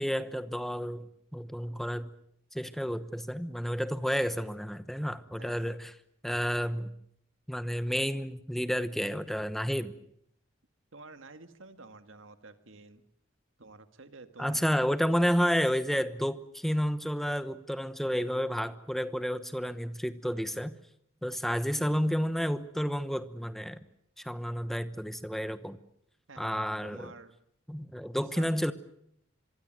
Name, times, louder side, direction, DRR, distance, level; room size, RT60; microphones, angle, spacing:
voice 1, 0.0-2.1 2.5-5.9 6.2-6.9 7.5-9.9 14.4-20.7 21.2-23.8 24.2-25.8 26.4-27.1 27.7-28.7, equal, ahead, 13 dB, 1.0 m, -31 dB
voice 2, 5.3-5.8 10.9-13.0 13.6-14.7 15.1-15.2 26.3-26.5 26.8-27.3 28.4-28.5, right 3 dB, 75° right, 9 dB, 1.9 m, -50 dB
25.5 x 23.0 x 7.7 m, 0.72 s
head